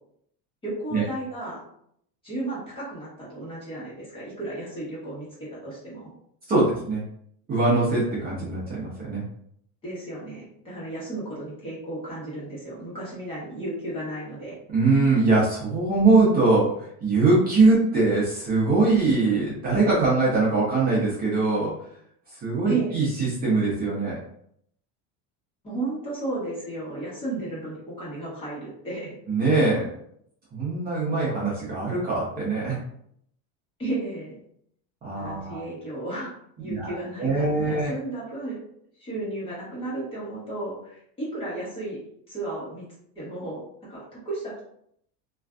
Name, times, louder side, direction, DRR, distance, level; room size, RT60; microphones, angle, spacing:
voice 1, 0.6-1.6 2.2-6.1 9.8-14.6 22.7-23.0 25.6-29.1 33.8-34.4 35.2-36.3 36.6-38.6 39.0-42.0 42.3-42.8 43.1-43.6 43.9-44.6, right 2 dB, 15° left, -8 dB, 1.0 m, -34 dB
voice 2, 6.5-7.0 7.5-9.2 14.7-21.7 22.3-24.2 29.3-29.9 30.5-32.8 35.0-35.6 36.7-37.9, right 3 dB, 25° right, -7 dB, 0.7 m, -22 dB
2.5 x 2.3 x 2.3 m, 0.69 s
cardioid pair, 160°, 33 cm